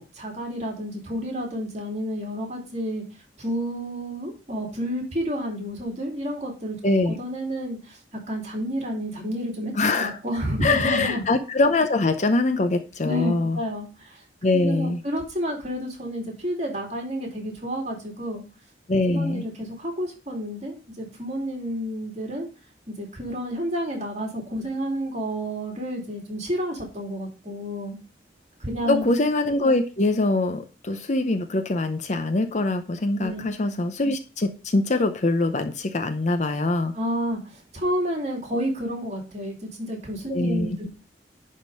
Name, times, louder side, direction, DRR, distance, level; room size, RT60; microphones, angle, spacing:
voice 1, 0.0-3.0 3.4-6.8 7.0-8.0 8.3-11.3 13.0-14.2 14.5-18.4 19.1-22.5 22.9-28.0 28.6-29.1 33.2-33.5 36.9-40.9, equal, 40° right, 0 dB, 2.6 m, -30 dB
voice 2, 6.8-7.1 9.8-10.1 10.6-13.6 14.4-15.0 18.9-19.4 28.9-36.9 40.3-40.7, left 2 dB, 40° left, 7 dB, 0.7 m, -23 dB
10.5 x 3.7 x 5.2 m, 0.34 s
head